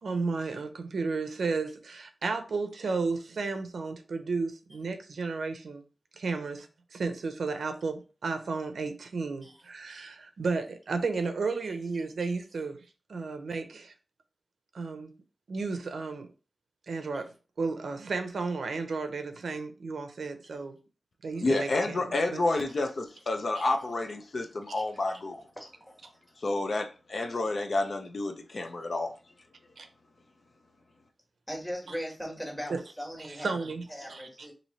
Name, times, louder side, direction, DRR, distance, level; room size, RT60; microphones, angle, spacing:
voice 1, 0.0-5.8 6.2-6.7 6.9-12.8 13.1-13.9 14.7-15.1 15.5-16.3 16.9-17.3 17.6-20.8 21.2-22.4 23.5-23.6 29.8-29.9 32.7-32.8 33.2-33.8 34.1-34.3, right 4 dB, 90° right, 0.6 m, -33 dB
voice 2, 21.4-25.4 26.4-29.1, left 2 dB, 55° left, 0.5 m, -29 dB
voice 3, 25.6-26.0 31.5-33.5 33.9-34.5, equal, 10° left, 1.4 m, -39 dB
3.1 x 2.7 x 4.0 m
wide cardioid pair, 115°, 0 cm